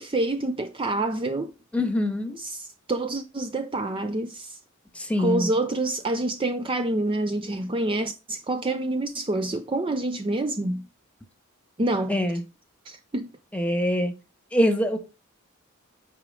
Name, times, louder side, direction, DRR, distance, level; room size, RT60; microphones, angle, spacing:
voice 1, 0.0-1.5 2.4-4.6 5.2-10.8 11.8-12.2 12.9-13.3, right 2 dB, 25° right, 0.5 m, -27 dB
voice 2, 1.7-2.4 4.9-5.5 12.1-12.4 13.5-14.1 14.5-15.0, equal, 5° left, 1.3 m, -24 dB
9.1 x 4.8 x 3.7 m
head